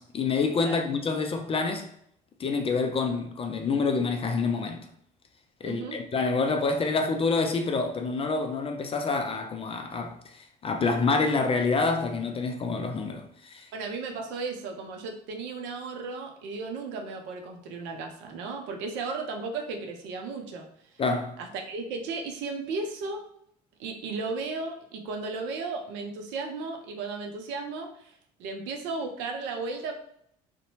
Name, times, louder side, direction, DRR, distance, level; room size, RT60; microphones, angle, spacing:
voice 1, 0.0-1.9 2.4-4.9 5.6-13.7 21.0-21.4, left 4 dB, 30° left, 0.4 m, -27 dB
voice 2, 5.6-6.0 13.7-20.7 21.4-23.2 23.8-29.9, right 4 dB, 65° right, 0.6 m, -35 dB
2.6 x 2.1 x 2.8 m
hypercardioid pair, 65°, 20 cm